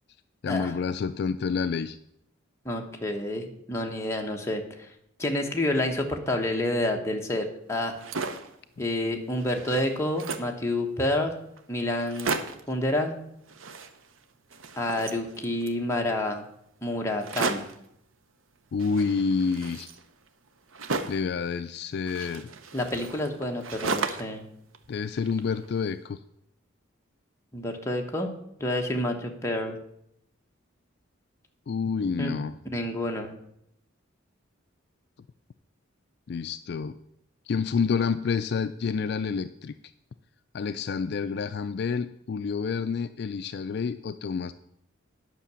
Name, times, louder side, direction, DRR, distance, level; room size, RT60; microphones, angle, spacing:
voice 1, 0.4-2.0 18.7-19.9 21.1-22.5 24.9-26.2 31.7-32.5 36.3-37.0 37.5-39.7 40.5-44.5, left 5 dB, 55° left, 11 dB, 0.3 m, -28 dB
voice 2, 2.6-4.9 5.2-8.0 8.8-11.3 11.7-12.3 12.7-13.2 14.8-16.4 16.8-17.6 22.7-24.4 27.5-28.3 28.6-29.8 32.2-32.3 32.7-33.3, left 1 dB, 15° left, 1 dB, 1.2 m, -29 dB
sound 1, 7.8-8.6 9.0-9.1 9.4-10.6 11.2-11.3 11.6-11.7 12.0-12.7 13.5-14.2 14.5-15.8 17.2-17.9 18.8-21.3 22.1-24.4 24.7-25.7, right 4 dB, 80° right, 0.8 m, -34 dB
10.0 x 5.9 x 6.9 m, 0.75 s
head